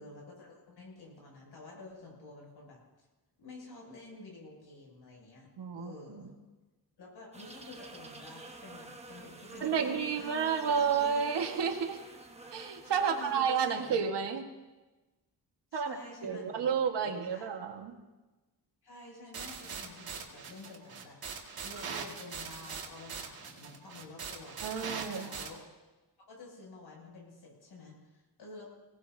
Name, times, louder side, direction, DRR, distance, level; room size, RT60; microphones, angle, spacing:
voice 1, 0.0-3.1 3.4-6.3 7.0-10.4 13.0-14.0 15.7-16.7 17.0-17.5 18.8-21.2 21.6-24.6 25.1-25.6 26.3-28.7, left 2 dB, 75° left, -2 dB, 7.3 m, -50 dB
voice 2, 5.6-6.2 9.6-12.0 12.5-14.4 15.7-16.0 16.2-18.0 24.6-25.3, right 6 dB, 85° right, 4 dB, 1.7 m, -31 dB
sound 1, 7.3-14.0, right 2 dB, 15° right, 1.2 m, -49 dB
sound 2, 19.3-25.5, right 5 dB, 60° right, 2.1 m, -42 dB
24.0 x 18.0 x 2.8 m, 1.2 s
wide cardioid pair, 140°, 40 cm